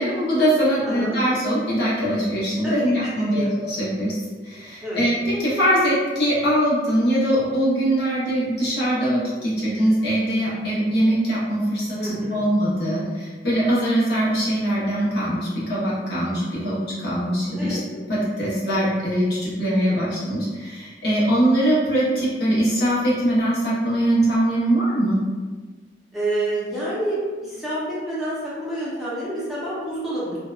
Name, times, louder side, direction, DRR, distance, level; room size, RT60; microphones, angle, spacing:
voice 1, 0.0-4.2 4.4-25.2, right 1 dB, 60° left, -8 dB, 0.9 m, -22 dB
voice 2, 0.8-1.2 2.6-2.8 3.2-3.5 4.8-5.0 12.0-12.4 17.6-17.8 26.1-30.4, right 1 dB, ahead, -10 dB, 0.6 m, -28 dB
2.7 x 2.1 x 2.3 m, 1.4 s
head